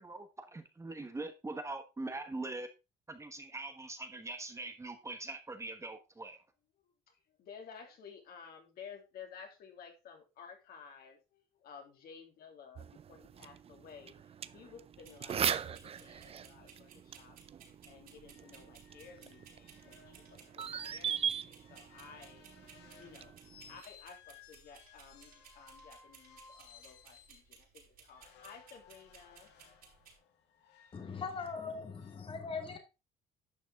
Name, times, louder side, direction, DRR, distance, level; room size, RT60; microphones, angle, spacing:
voice 1, 0.0-2.7 3.1-6.4, right 2 dB, 15° right, 1.2 m, -42 dB
voice 2, 7.5-14.2 14.5-17.4 17.8-22.4 23.0-23.3 23.6-29.5, left 6 dB, 65° left, 3.0 m, -54 dB
sound 1, 12.8-23.8, right 8 dB, 35° right, 0.5 m, -41 dB
sound 2, 15.0-30.2, right 6 dB, 65° right, 4.4 m, -60 dB
sound 3, 17.4-17.6 17.9-18.0 18.3-27.5 28.1-32.2, left 7 dB, 85° left, 1.9 m, -61 dB
voice 3, 30.9-32.8, left 5 dB, 30° left, 1.6 m, -40 dB
10.5 x 6.3 x 3.6 m
cardioid pair, 110°, 17 cm